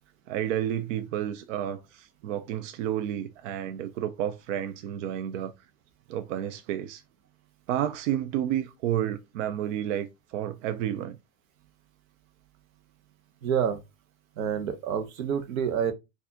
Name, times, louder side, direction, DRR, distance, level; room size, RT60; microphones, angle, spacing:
voice 1, 0.3-5.5 6.1-7.0 7.7-11.2, right 11 dB, 65° right, 0.5 m, -31 dB
voice 2, 13.4-13.8 14.4-15.9, right 8 dB, 90° right, 1.0 m, -28 dB
4.1 x 2.7 x 2.8 m
supercardioid pair, 150°, 40 cm